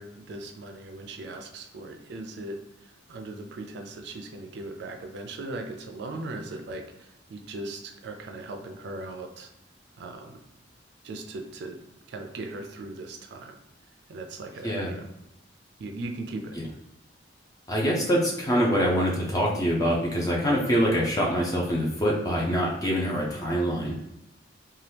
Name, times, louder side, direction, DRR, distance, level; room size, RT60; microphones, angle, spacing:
voice 1, 0.0-9.5 10.0-10.4 11.0-11.8 12.1-13.6 14.1-15.1 15.8-16.5, right 2 dB, 60° right, 4 dB, 0.4 m, -38 dB
voice 2, 17.7-24.0, equal, 20° left, -3 dB, 0.4 m, -25 dB
2.8 x 2.2 x 3.3 m, 0.83 s
head